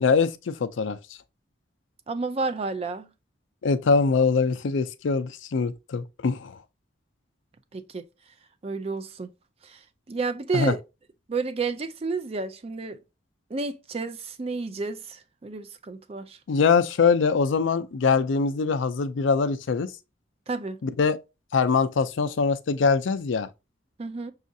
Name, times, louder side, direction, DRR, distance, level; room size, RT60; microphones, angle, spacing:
voice 1, 0.0-1.0 3.6-6.6 10.5-10.7 16.5-19.9 20.8-21.2 21.5-23.5, left 5 dB, 85° left, 0.4 m, -23 dB
voice 2, 2.1-3.1 7.7-8.1 8.6-9.3 9.6-9.8 10.1-10.8 11.3-13.0 13.5-16.4 20.5-20.8 24.0-24.3, right 4 dB, 30° right, 0.4 m, -31 dB
6.1 x 2.4 x 2.6 m
head